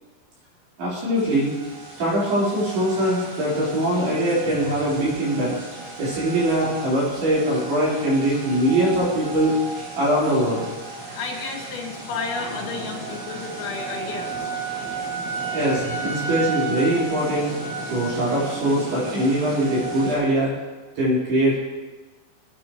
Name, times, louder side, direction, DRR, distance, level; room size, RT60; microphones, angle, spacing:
voice 1, 0.8-1.5 2.0-5.6 6.0-9.6 9.9-10.7 15.5-17.5 17.9-20.5 21.0-21.6, right 1 dB, 60° right, -7 dB, 6.3 m, -22 dB
sound 1, 1.1-20.2, right 4 dB, 85° right, 7.2 m, -33 dB
voice 2, 11.1-14.5, left 5 dB, 85° left, -2 dB, 4.9 m, -32 dB
22.0 x 9.5 x 3.1 m, 1.3 s
omnidirectional pair, 5.2 m